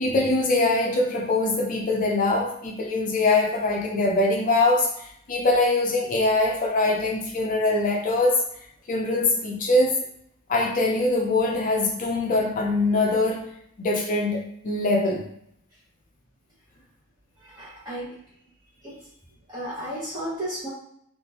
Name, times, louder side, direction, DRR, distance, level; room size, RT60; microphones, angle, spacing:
voice 1, 0.0-8.4 8.9-10.0 10.5-13.5 13.8-15.2, left 2 dB, 35° left, 0 dB, 0.5 m, -23 dB
voice 2, 17.4-18.1 18.8-19.1 19.5-20.7, right 1 dB, 15° right, -11 dB, 0.9 m, -33 dB
3.5 x 2.4 x 2.8 m, 0.69 s
head